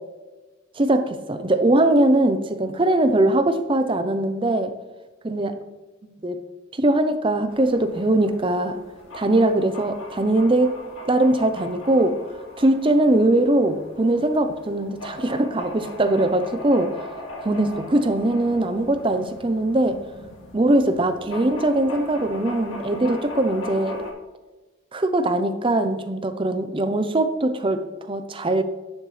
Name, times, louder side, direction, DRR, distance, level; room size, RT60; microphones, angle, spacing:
voice 1, 0.8-4.7 5.2-5.5 6.0-6.4 6.7-8.8 9.1-10.8 11.1-12.2 12.6-17.0 17.4-20.0 20.5-24.0 24.9-28.6, right 1 dB, 25° right, 9 dB, 0.6 m, -21 dB
sound 1, 7.5-24.1, left 1 dB, 85° left, 2.1 m, -39 dB
10.5 x 6.9 x 3.2 m, 1.2 s
head